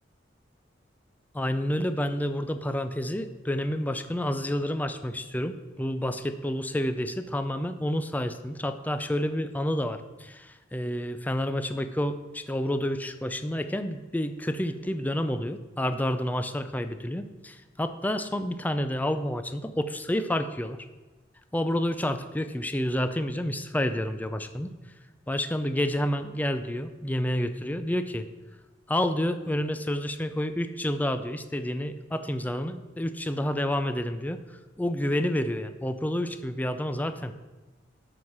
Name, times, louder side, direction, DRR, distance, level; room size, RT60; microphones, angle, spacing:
voice 1, 1.3-20.9 21.5-24.7 25.3-28.3 28.9-34.4 34.8-37.3, left 1 dB, 10° left, 9 dB, 0.4 m, -29 dB
12.5 x 4.8 x 6.0 m, 1.2 s
head